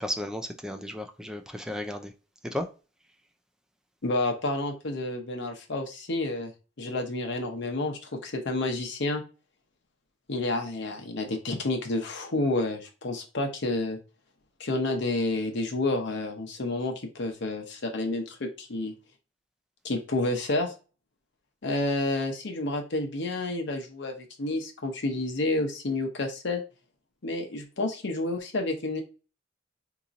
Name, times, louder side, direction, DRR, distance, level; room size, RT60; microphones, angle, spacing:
voice 1, 0.0-2.1 2.5-2.7, left 1 dB, 5° right, 0.4 m, -34 dB
voice 2, 4.0-6.5 6.8-9.2 10.3-14.0 14.6-18.9 19.8-20.7 21.6-26.6 27.2-29.0, left 2 dB, 65° left, 0.8 m, -30 dB
3.9 x 2.9 x 2.5 m
head